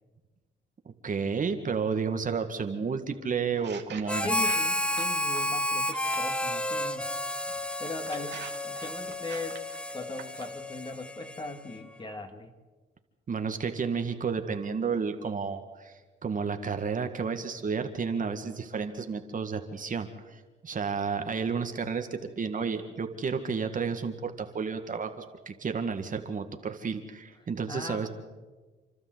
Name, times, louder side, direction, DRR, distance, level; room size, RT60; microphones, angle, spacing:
voice 1, 0.9-4.3 13.3-28.1, right 5 dB, 40° right, 6 dB, 1.9 m, -31 dB
sound 1, 3.5-6.6 7.3-10.6, right 8 dB, 60° right, 2.2 m, -47 dB
Harmonica, 4.1-11.8, left 1 dB, 5° left, 0.9 m, -31 dB
voice 2, 4.2-7.1 7.8-9.6 9.9-12.5 27.7-28.1, left 2 dB, 25° left, 6 dB, 2.4 m, -39 dB
29.0 x 12.5 x 8.0 m, 1.3 s
cardioid pair, 90°, 20 cm